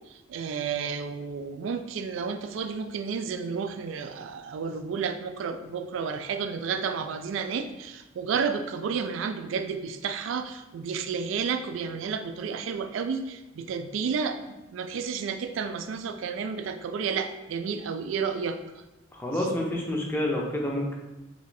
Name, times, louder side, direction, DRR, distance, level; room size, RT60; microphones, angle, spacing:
voice 1, 0.1-18.6, right 6 dB, 85° right, 9 dB, 0.3 m, -31 dB
voice 2, 19.1-21.0, left 1 dB, 10° left, -2 dB, 0.5 m, -28 dB
3.0 x 2.6 x 3.9 m, 1.0 s
head